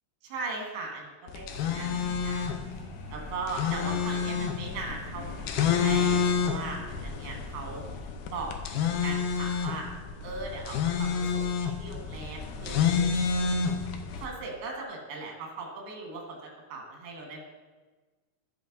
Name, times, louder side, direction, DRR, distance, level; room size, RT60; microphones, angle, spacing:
voice 1, 0.2-2.5 3.1-7.8 8.3-8.5 8.8-9.9 10.2-13.0 14.2-17.4, right 3 dB, 85° right, 0 dB, 3.5 m, -39 dB
sound 1, 1.3-14.3, left 6 dB, 75° left, 1.9 m, -29 dB
sound 2, 1.5-7.2 7.5-8.1, left 2 dB, 60° left, 2.7 m, -45 dB
15.5 x 5.4 x 2.6 m, 1.3 s
omnidirectional pair, 4.3 m